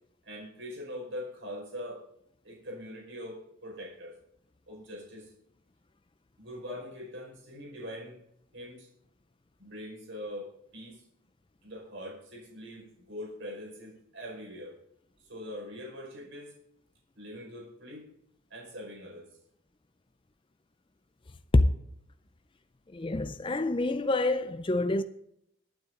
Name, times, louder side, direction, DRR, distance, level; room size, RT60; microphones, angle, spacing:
voice 1, 0.2-2.0 2.4-4.2 4.7-5.3 6.4-8.2 8.5-8.9 9.6-11.0 11.6-14.8 15.2-16.5 17.1-18.1 18.5-19.4, equal, 60° right, 5.2 m, -42 dB
voice 2, 22.9-25.0, left 2 dB, 25° left, 0.5 m, -26 dB
20.5 x 8.9 x 3.8 m
head